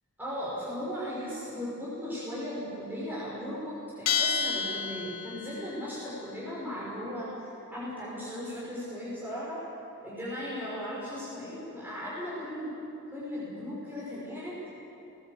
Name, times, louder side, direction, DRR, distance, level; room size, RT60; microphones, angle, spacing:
voice 1, 0.2-9.6 10.0-12.7 13.1-14.8, equal, 10° right, -9 dB, 6.1 m, -37 dB
Bell, 4.1-5.6, left 6 dB, 70° left, 1.5 m, -29 dB
20.0 x 20.0 x 8.3 m, 2.9 s
head